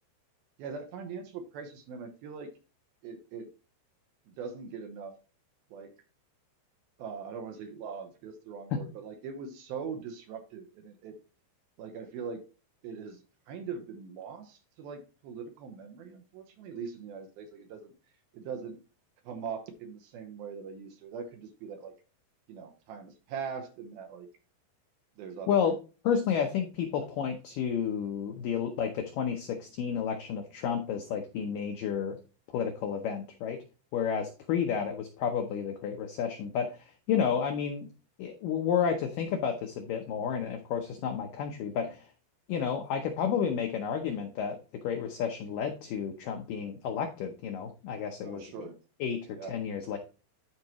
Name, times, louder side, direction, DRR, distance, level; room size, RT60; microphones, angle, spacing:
voice 1, 0.6-2.5 3.0-3.5 4.3-5.1 5.7-5.9 7.0-11.2 11.8-12.4 12.8-13.2 13.5-17.9 18.3-18.8 19.3-21.9 22.5-24.3 25.2-25.7 48.2-48.8 49.3-49.6, right 6 dB, 75° right, 6 dB, 2.5 m, -41 dB
voice 2, 26.0-32.2 32.5-33.6 33.9-37.9 38.2-42.1 42.5-44.6 44.8-48.5 49.0-50.0, left 7 dB, 80° left, 4 dB, 1.9 m, -31 dB
12.5 x 4.7 x 3.0 m, 0.34 s
omnidirectional pair, 5.0 m